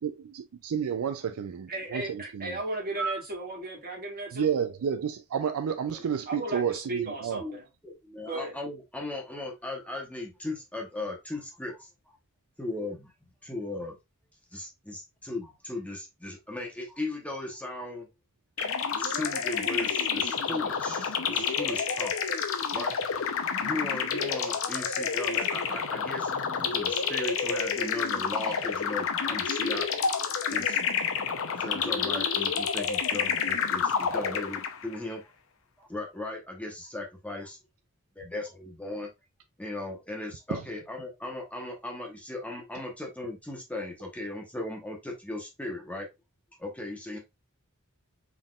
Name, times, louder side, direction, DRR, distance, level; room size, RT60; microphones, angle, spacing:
voice 1, 0.0-2.6 3.0-3.1 4.3-7.4 40.5-40.6, right 7 dB, 70° right, 0.4 m, -31 dB
voice 2, 1.7-4.5 6.3-7.6 8.2-8.6, right 2 dB, 45° right, 1.8 m, -35 dB
voice 3, 7.4-11.9 12.6-13.1 13.4-14.0 14.5-18.1 18.6-18.7 19.0-22.4 22.7-22.9 23.6-29.9 30.5-30.8 31.6-35.2 35.8-37.6 38.2-39.1 39.6-46.1 46.6-47.2, left 2 dB, 5° left, 0.9 m, -37 dB
sound 1, 18.6-35.0, left 6 dB, 65° left, 0.6 m, -29 dB
4.1 x 3.6 x 2.3 m
head